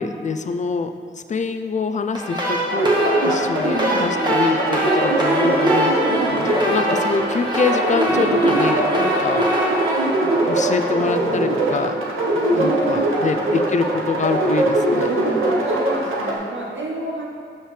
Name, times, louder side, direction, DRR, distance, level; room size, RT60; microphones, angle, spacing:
voice 1, 0.0-3.0 3.2-6.2 6.7-9.5 10.5-11.9 12.3-15.1, left 4 dB, 35° left, 9 dB, 0.4 m, -25 dB
sound 1, 2.1-11.2, equal, 20° right, 1.5 m, -24 dB
sound 2, 2.7-16.4, right 1 dB, 85° right, 0.9 m, -21 dB
Bowed string instrument, 3.9-8.2, right 4 dB, 50° right, 0.6 m, -30 dB
voice 2, 6.3-6.6 12.5-13.6 15.7-17.2, right 1 dB, 70° right, -3 dB, 1.2 m, -31 dB
5.8 x 5.6 x 3.2 m, 2.2 s
cardioid pair, 45°, 20 cm